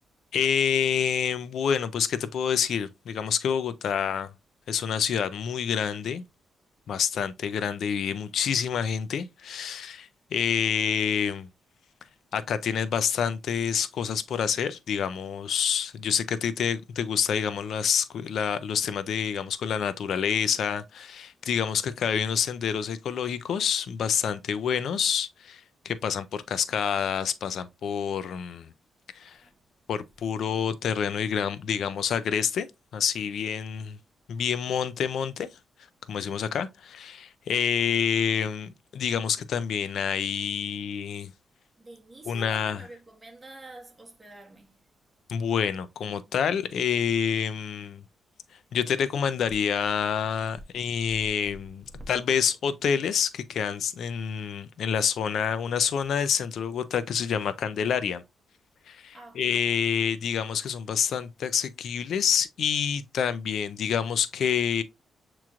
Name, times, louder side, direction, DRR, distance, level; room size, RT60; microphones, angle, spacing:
voice 1, 0.3-4.3 4.7-6.2 6.9-11.5 12.3-28.7 29.2-29.4 29.9-32.7 32.9-34.0 34.3-35.5 36.1-41.3 42.3-42.8 45.3-48.0 48.7-58.2 58.9-64.8, left 7 dB, 65° left, 0.3 m, -27 dB
voice 2, 29.3-29.6 41.8-44.9 51.1-51.6 59.1-59.9, right 1 dB, 15° right, 1.2 m, -48 dB
7.2 x 3.0 x 2.4 m
wide cardioid pair, 150°, 0 cm